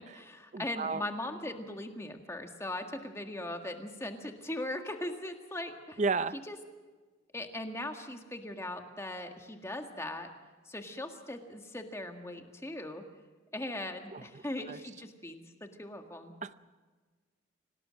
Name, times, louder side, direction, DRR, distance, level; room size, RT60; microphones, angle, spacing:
voice 1, 0.0-6.0 6.5-6.6 7.3-10.3 10.7-13.0 13.5-16.3, left 1 dB, 15° left, 4 dB, 1.7 m, -39 dB
voice 2, 0.5-1.0 6.0-6.3 14.1-14.4 14.7-14.8 16.4-16.5, right 4 dB, 35° right, 14 dB, 0.6 m, -32 dB
26.0 x 18.5 x 6.4 m, 1.4 s
head